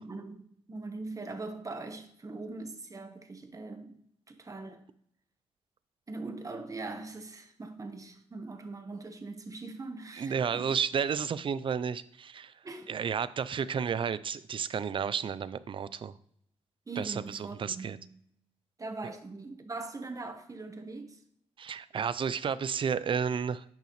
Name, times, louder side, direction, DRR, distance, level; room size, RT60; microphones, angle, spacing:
voice 1, 0.0-4.0 4.3-4.8 6.1-10.7 12.6-12.9 13.6-13.7 16.9-18.1 18.8-21.2, right 3 dB, 30° right, 1.1 m, -41 dB
voice 2, 10.2-12.5 12.9-16.1 17.0-18.0 21.6-23.6, right 7 dB, 45° right, 0.4 m, -32 dB
10.5 x 5.6 x 3.1 m
cardioid pair, 80°, 12 cm